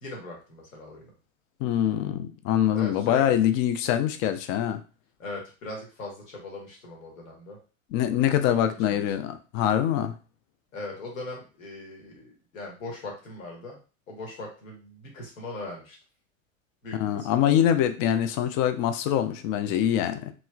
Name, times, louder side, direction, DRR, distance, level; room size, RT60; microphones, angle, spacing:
voice 1, 0.0-1.1 2.7-3.2 5.2-7.6 8.4-9.0 10.7-13.8 14.1-16.0 16.8-17.6, left 2 dB, 75° left, -1 dB, 1.3 m, -40 dB
voice 2, 1.6-4.8 7.9-10.1 16.9-20.3, left 10 dB, 40° left, 9 dB, 0.4 m, -24 dB
3.1 x 3.0 x 2.3 m, 0.34 s
figure-of-eight pair, 80°, 41 cm